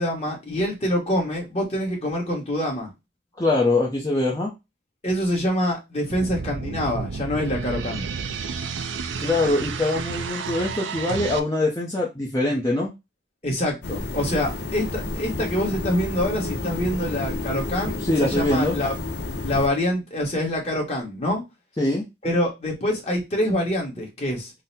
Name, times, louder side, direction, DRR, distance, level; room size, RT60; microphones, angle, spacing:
voice 1, 0.0-2.9 5.0-8.0 13.4-18.9 19.4-21.4 22.2-24.5, left 1 dB, 35° left, 1.3 m, -25 dB
voice 2, 3.4-4.5 9.2-12.9 18.0-18.8 21.8-22.1, left 2 dB, 20° left, 0.7 m, -23 dB
sound 1, 6.1-11.4, right 5 dB, 85° right, 0.5 m, -31 dB
sound 2, 13.8-19.7, left 2 dB, 65° left, 0.7 m, -30 dB
4.0 x 2.1 x 4.0 m
head